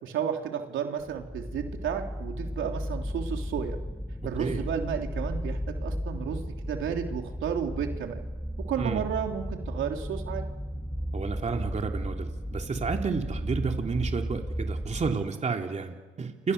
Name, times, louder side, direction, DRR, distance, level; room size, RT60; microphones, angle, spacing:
voice 1, 0.0-3.8 4.2-8.2 8.7-10.4, right 8 dB, 80° right, 3 dB, 3.3 m, -32 dB
sound 1, 1.0-15.1, equal, ahead, 1.9 m, -34 dB
voice 2, 4.4-4.7 8.8-9.1 11.1-16.5, right 5 dB, 35° right, 3 dB, 2.9 m, -31 dB
29.0 x 27.0 x 6.8 m, 1.3 s
cardioid pair, 90°, 20 cm